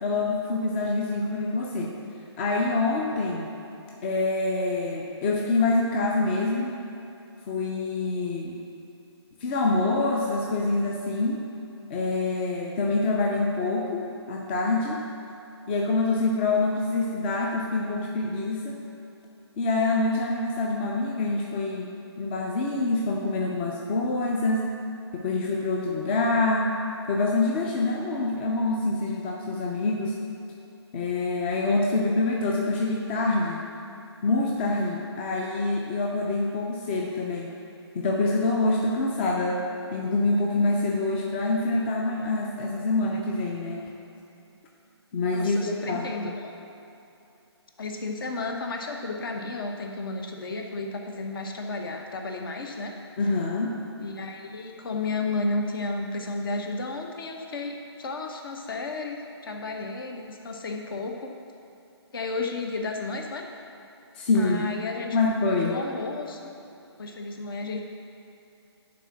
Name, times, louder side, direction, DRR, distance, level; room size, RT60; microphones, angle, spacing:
voice 1, 0.0-1.9 2.4-3.5 4.0-6.8 7.5-8.6 9.4-11.4 11.9-15.0 15.7-18.8 19.6-21.9 22.2-24.7 25.1-26.7 27.1-30.2 30.9-33.6 34.2-37.5 37.9-39.6 39.9-43.9 45.1-46.3 53.2-53.8 64.1-64.7 65.1-65.8, left 2 dB, 25° left, -1 dB, 0.6 m, -26 dB
voice 2, 45.3-46.5 47.8-52.9 54.0-61.3 62.1-63.5 64.3-65.2 65.6-66.5 67.0-67.8, left 3 dB, 50° left, 3 dB, 1.1 m, -33 dB
9.9 x 3.8 x 7.1 m, 2.8 s
figure-of-eight pair, 150°, 14 cm